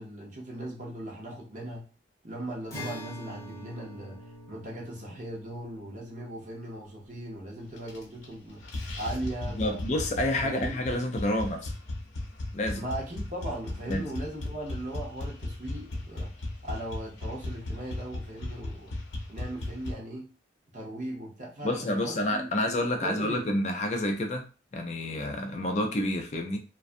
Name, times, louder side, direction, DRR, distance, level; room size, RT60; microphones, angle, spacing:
voice 1, 0.0-1.9 2.2-4.2 4.5-8.7 9.0-9.8 10.4-10.8 12.7-16.3 16.6-18.9 19.3-20.3 20.7-22.5 23.0-23.5, right 1 dB, 40° right, -3 dB, 0.8 m, -38 dB
Acoustic guitar, 2.7-8.2, equal, 15° left, 0.9 m, -45 dB
sound 1, 7.8-8.3 8.6-19.9, left 2 dB, 80° left, 0.6 m, -36 dB
voice 2, 9.6-11.7 12.5-12.8 13.9-14.1 21.6-24.4 24.7-26.6, left 1 dB, 35° left, 4 dB, 0.4 m, -29 dB
2.5 x 2.2 x 2.5 m, 0.34 s
head